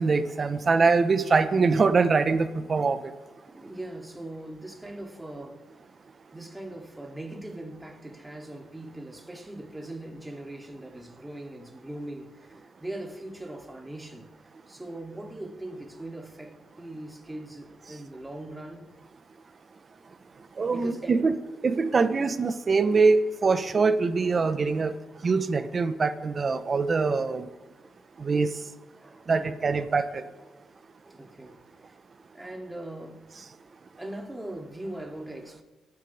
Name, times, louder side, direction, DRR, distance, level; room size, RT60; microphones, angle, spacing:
voice 1, 0.0-3.0 20.6-21.4 21.6-24.9 25.2-27.5 28.2-28.5 29.3-30.2, right 4 dB, 40° right, 1.3 m, -23 dB
voice 2, 3.5-5.7 6.3-14.3 14.7-18.9 20.7-21.2 29.0-30.0 30.5-30.6 31.0-32.0 32.3-33.2 34.0-35.6, right 1 dB, 10° right, 3.0 m, -40 dB
25.0 x 12.0 x 3.7 m
cardioid pair, 85°, 0 cm